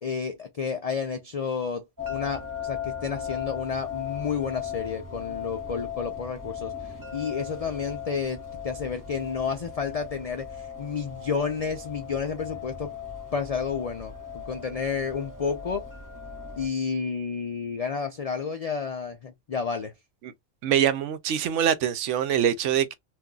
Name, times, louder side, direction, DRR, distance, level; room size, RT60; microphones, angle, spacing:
voice 1, 0.0-12.9 13.3-15.9 16.6-19.9, left 6 dB, 70° left, 0.3 m, -31 dB
sound 1, 2.0-16.7, left 8 dB, 20° right, 0.5 m, -37 dB
voice 2, 20.6-22.9, right 9 dB, 75° right, 0.9 m, -24 dB
2.6 x 2.2 x 3.7 m
omnidirectional pair, 1.3 m